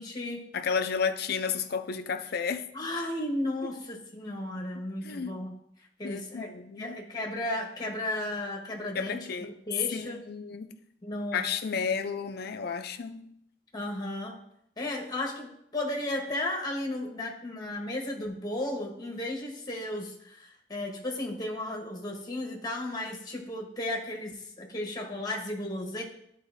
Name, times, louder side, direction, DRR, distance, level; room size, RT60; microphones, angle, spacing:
voice 1, 0.0-0.4 2.7-5.6 6.0-6.5 6.8-10.2 11.0-11.4 13.7-14.4 14.8-26.0, left 1 dB, 20° left, 1.2 m, -34 dB
voice 2, 0.5-2.7 5.0-5.4 6.0-7.0 8.9-9.5 9.9-10.8 11.3-13.3, left 6 dB, 55° left, 0.5 m, -32 dB
11.0 x 4.0 x 2.7 m
head